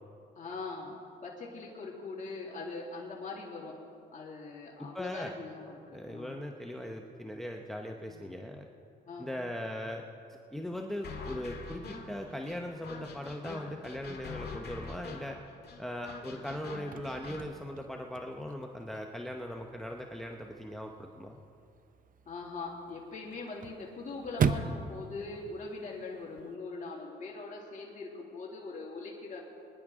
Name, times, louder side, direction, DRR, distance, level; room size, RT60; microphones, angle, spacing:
voice 1, 0.4-3.8 4.1-6.4 8.1-8.2 9.1-9.3 16.3-16.5 22.3-29.4, left 3 dB, 40° left, -4 dB, 2.5 m, -42 dB
voice 2, 4.8-5.3 5.9-8.6 9.2-15.4 15.8-21.4, left 1 dB, ahead, 2 dB, 0.9 m, -39 dB
sound 1, 11.0-17.4, left 4 dB, 55° left, 2.0 m, -45 dB
Chirp tweet / Car / Slam, 16.6-26.5, right 6 dB, 45° right, 0.7 m, -39 dB
23.0 x 10.5 x 3.7 m, 2.5 s
cardioid pair, 90°, 20 cm